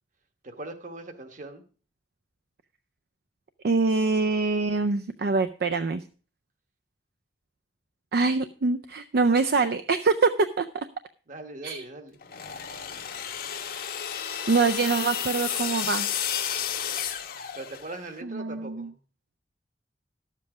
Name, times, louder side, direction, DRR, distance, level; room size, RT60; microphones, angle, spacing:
voice 1, 0.4-1.6 11.3-12.2 17.5-18.9, right 2 dB, 45° right, 8 dB, 1.3 m, -40 dB
voice 2, 3.6-6.0 8.1-10.3 10.6-10.9 11.6-11.8 14.5-16.1 18.2-18.9, right 4 dB, 60° right, 10 dB, 0.5 m, -24 dB
sound 1, 12.2-18.1, left 9 dB, 55° left, 0.9 m, -32 dB
11.5 x 7.5 x 4.8 m, 0.39 s
head